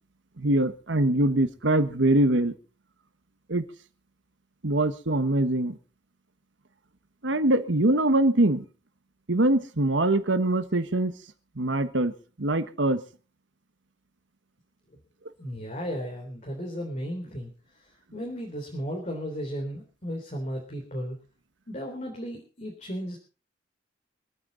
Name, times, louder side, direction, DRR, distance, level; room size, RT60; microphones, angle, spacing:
voice 1, 0.4-2.5 3.5-3.7 4.6-5.8 7.2-8.6 9.3-11.1 11.6-12.1 12.4-13.0, right 1 dB, 85° right, 10 dB, 1.4 m, -23 dB
voice 2, 15.4-17.5 18.1-21.2 21.7-23.2, equal, 40° left, 0 dB, 3.5 m, -34 dB
25.5 x 9.4 x 4.0 m, 0.35 s
head